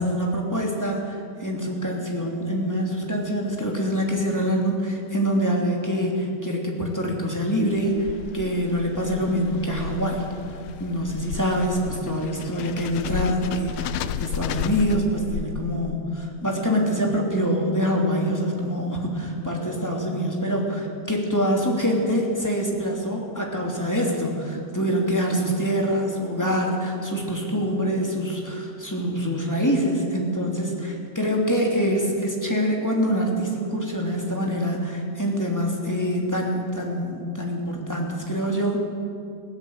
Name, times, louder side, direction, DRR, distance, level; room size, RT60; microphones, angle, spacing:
voice 1, 0.0-10.2 10.8-38.8, equal, 5° left, -1 dB, 2.4 m, -25 dB
sound 1, 7.7-16.1, left 10 dB, 85° left, 1.6 m, -33 dB
21.0 x 16.0 x 8.0 m, 2.4 s
omnidirectional pair, 3.9 m